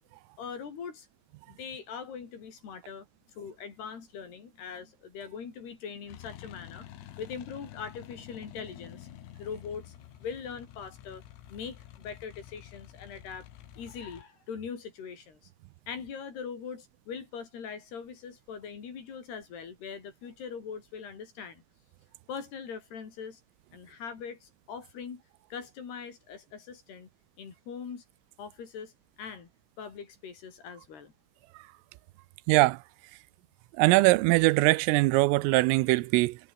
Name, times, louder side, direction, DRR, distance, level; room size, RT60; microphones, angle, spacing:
voice 1, 0.4-1.1 1.5-11.2 11.5-13.5 13.8-15.4 15.9-21.6 22.3-23.4 23.7-25.2 25.5-27.1 27.4-28.0 28.4-28.9 29.2-29.5 29.8-31.1, left 6 dB, 55° left, 5.9 m, -41 dB
sound 1, 6.1-14.2, left 13 dB, 80° left, 4.4 m, -49 dB
voice 2, 32.5-32.8 33.8-36.4, right 21 dB, 85° right, 3.3 m, -22 dB
omnidirectional pair, 5.8 m